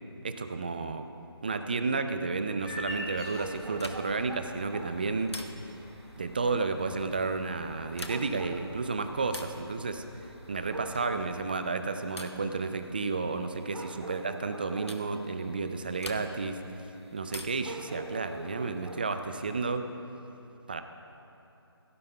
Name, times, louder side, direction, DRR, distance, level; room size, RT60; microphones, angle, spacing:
voice 1, 0.2-1.1 1.4-5.3 6.1-10.0 10.5-16.6 17.1-19.8 20.7-20.8, right 4 dB, 20° right, 8 dB, 0.4 m, -32 dB
sound 1, 2.6-11.5, left 1 dB, 5° left, 0.9 m, -47 dB
sound 2, 2.6-19.7, right 2 dB, 90° right, 1.1 m, -47 dB
sound 3, 3.8-4.3 5.3-5.9 7.8-8.5 9.3-9.7 10.9-11.3 12.2-12.5 13.8-14.0 14.9-15.1 16.0-16.6 17.3-17.8 19.2-19.9, left 2 dB, 85° left, 1.1 m, -44 dB
16.5 x 12.5 x 2.3 m, 2.9 s
figure-of-eight pair, 155°, 14 cm